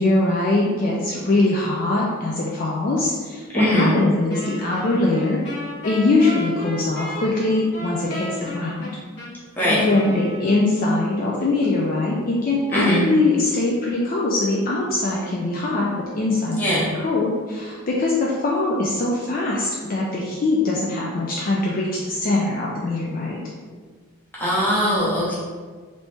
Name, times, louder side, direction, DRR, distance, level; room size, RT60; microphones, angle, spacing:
voice 1, 0.0-5.4 5.8-8.3 8.5-8.9 9.7-23.4, left 2 dB, 40° left, -4 dB, 0.3 m, -22 dB
voice 2, 3.5-3.9 9.6-9.8 12.7-13.0 16.6-16.8 24.3-25.3, equal, 10° left, -8 dB, 0.8 m, -20 dB
Wind instrument woodwind instrument, 4.3-10.9, equal, 55° left, 1.1 m, -34 dB
3.0 x 2.7 x 3.3 m, 1.5 s
head